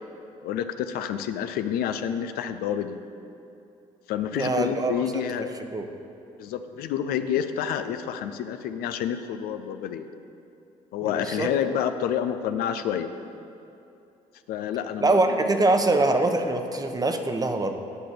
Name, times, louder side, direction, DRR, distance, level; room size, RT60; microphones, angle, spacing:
voice 1, 0.4-3.0 4.1-5.5 6.4-10.1 10.9-13.1 14.5-15.5, left 9 dB, 75° left, 9 dB, 0.5 m, -29 dB
voice 2, 4.3-5.2 5.7-5.9 11.0-11.5 15.0-17.8, right 2 dB, 25° right, 6 dB, 0.9 m, -24 dB
9.9 x 6.0 x 6.7 m, 2.8 s
supercardioid pair, 65°, 16 cm